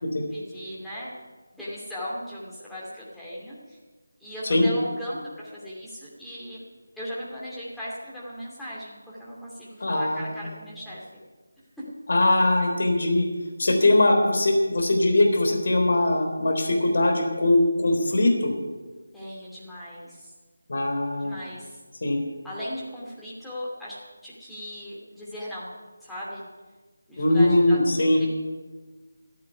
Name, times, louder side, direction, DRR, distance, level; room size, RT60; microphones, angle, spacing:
voice 1, 0.3-1.1 1.5-3.8 4.2-6.7 6.9-11.0 11.8-11.9 13.8-14.0 19.1-20.3 21.2-21.8 22.4-25.7 26.0-26.4 27.1-28.3, equal, ahead, -9 dB, 2.9 m, -37 dB
voice 2, 9.8-10.5 12.1-13.3 13.6-18.5 20.7-21.4 22.0-22.2 27.2-28.2, left 1 dB, 55° left, 4 dB, 3.6 m, -21 dB
14.5 x 8.6 x 9.6 m, 1.3 s
figure-of-eight pair, 165°, 0 cm